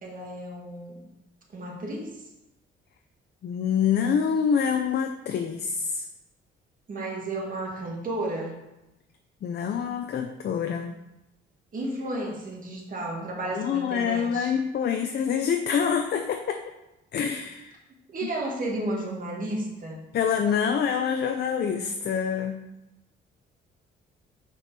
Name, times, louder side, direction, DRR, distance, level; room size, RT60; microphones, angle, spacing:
voice 1, 0.0-1.1 1.5-2.2 6.9-8.6 11.7-14.5 18.1-20.1, right 1 dB, 45° right, -1 dB, 1.7 m, -33 dB
voice 2, 3.4-6.1 9.4-10.9 13.5-16.6 17.1-17.7 20.1-22.6, left 7 dB, 55° left, 5 dB, 0.6 m, -26 dB
5.1 x 4.6 x 5.9 m, 0.94 s
cardioid pair, 90°, 20 cm